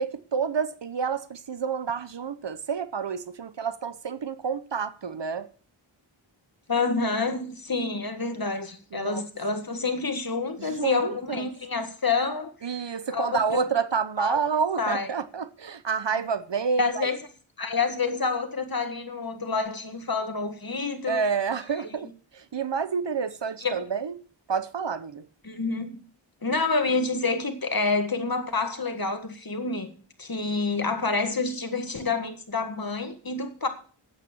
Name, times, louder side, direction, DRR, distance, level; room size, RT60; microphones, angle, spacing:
voice 1, 0.0-5.5 8.9-9.3 10.6-11.5 12.6-17.1 21.1-24.2 24.5-25.3, right 6 dB, 60° right, 0.9 m, -29 dB
voice 2, 6.7-12.5 13.1-13.6 14.2-14.4 14.8-15.1 16.8-17.2 17.6-21.2 23.6-23.8 25.4-26.0 26.4-29.9 30.2-33.7, left 4 dB, 45° left, 1.9 m, -28 dB
9.0 x 8.3 x 6.8 m
wide cardioid pair, 50°, 48 cm